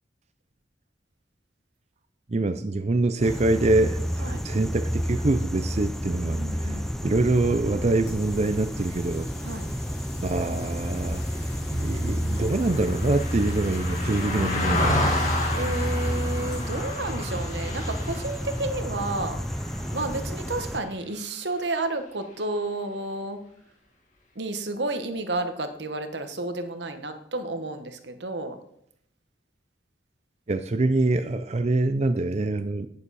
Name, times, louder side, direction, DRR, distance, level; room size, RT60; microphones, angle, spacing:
voice 1, 2.3-9.3 10.2-11.2 11.7-15.0 30.5-32.9, right 2 dB, 40° right, 9 dB, 0.5 m, -25 dB
sound 1, 3.2-20.8, equal, ahead, 0.7 m, -30 dB
voice 2, 6.1-6.9 9.4-9.7 15.5-19.4 19.9-23.4 24.3-28.6, right 2 dB, 80° right, 8 dB, 1.3 m, -31 dB
sound 2, 7.8-17.8, left 3 dB, 80° left, 5.2 m, -47 dB
Car passing by, 11.2-20.7 21.1-21.3, left 1 dB, 45° left, 2.8 m, -32 dB
11.0 x 9.8 x 4.2 m, 0.70 s
head